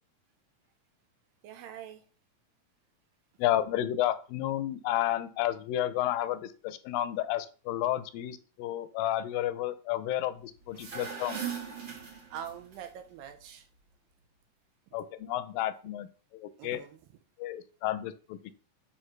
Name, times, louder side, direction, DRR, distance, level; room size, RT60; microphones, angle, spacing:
voice 1, 1.4-2.0 12.3-13.7 16.6-17.0, right 9 dB, 85° right, 7 dB, 2.5 m, -43 dB
voice 2, 3.4-11.4 14.9-16.1 16.3-16.8 17.4-18.5, left 13 dB, 85° left, 12 dB, 2.3 m, -31 dB
sound 1, 10.6-12.8, right 7 dB, 50° right, 1.5 m, -39 dB
9.3 x 3.6 x 3.2 m, 0.38 s
omnidirectional pair, 4.0 m